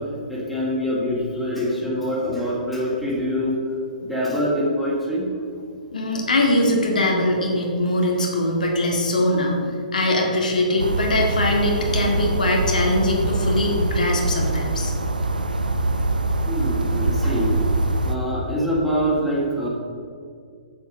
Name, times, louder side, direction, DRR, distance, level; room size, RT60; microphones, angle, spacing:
voice 1, 0.0-5.3 16.5-17.8 18.0-19.7, equal, ahead, -7 dB, 2.5 m, -25 dB
voice 2, 5.9-9.6 9.9-14.9, left 1 dB, 70° left, 0 dB, 1.9 m, -22 dB
sound 1, 10.8-18.2, right 2 dB, 80° right, 0.7 m, -23 dB
7.9 x 7.3 x 5.2 m, 2.3 s
figure-of-eight pair, 120°, 4 cm